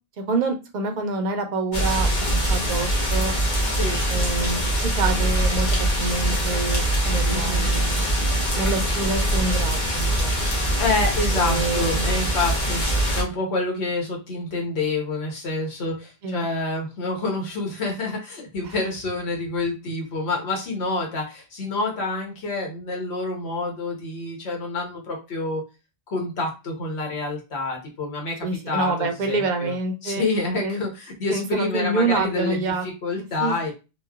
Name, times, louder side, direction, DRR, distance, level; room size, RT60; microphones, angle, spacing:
voice 1, 0.2-3.3 4.1-8.1 8.5-10.4 11.3-12.1 16.2-16.4 18.6-18.8 28.4-30.2 30.6-30.8 31.3-32.8 33.2-33.5, right 3 dB, 55° right, 5 dB, 0.6 m, -27 dB
sound 1, 1.7-13.2, right 1 dB, 50° left, 0.8 m, -23 dB
voice 2, 3.6-4.0 7.3-7.6 10.8-25.6 26.1-29.7 30.0-33.7, left 3 dB, 85° left, 0 dB, 1.2 m, -28 dB
2.9 x 2.1 x 2.3 m, 0.29 s
omnidirectional pair, 1.1 m